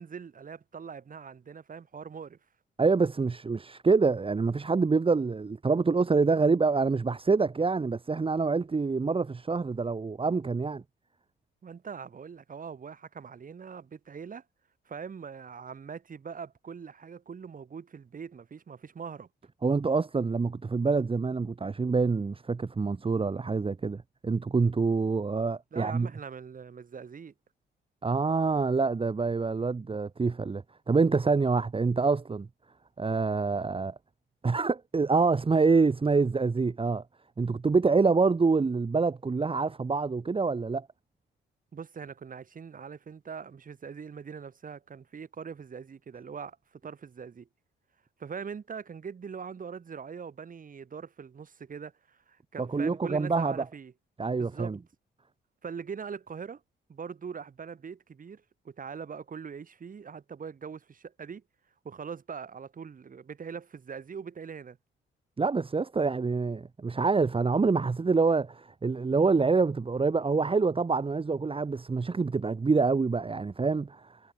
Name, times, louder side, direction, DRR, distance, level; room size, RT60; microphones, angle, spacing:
voice 1, 0.0-2.4 11.6-14.4 14.9-19.3 25.7-27.3 41.7-47.5 48.2-53.9 54.4-54.8 55.6-56.6 56.9-61.4 61.8-64.8, right 6 dB, 45° right, 6.3 m, -42 dB
voice 2, 2.8-10.8 19.6-26.1 28.0-32.5 33.0-33.9 34.4-37.0 37.4-40.9 52.6-53.6 54.2-54.8 65.4-74.2, right 4 dB, 25° right, 2.3 m, -26 dB
cardioid pair, 90°, 20 cm